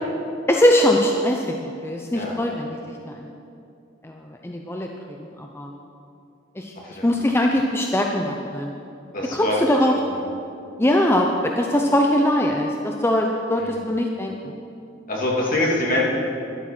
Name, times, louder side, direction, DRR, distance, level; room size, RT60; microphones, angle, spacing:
voice 1, 0.5-2.8 3.1-3.2 4.0-4.1 4.4-4.9 5.2-5.7 6.6-6.7 7.0-8.7 9.3-9.9 10.8-14.3, left 1 dB, 15° left, 1 dB, 0.7 m, -21 dB
voice 2, 9.1-9.6 10.1-10.2 13.6-13.7 15.1-16.0, left 1 dB, 50° left, -3 dB, 2.8 m, -24 dB
12.5 x 12.0 x 6.1 m, 2.6 s
head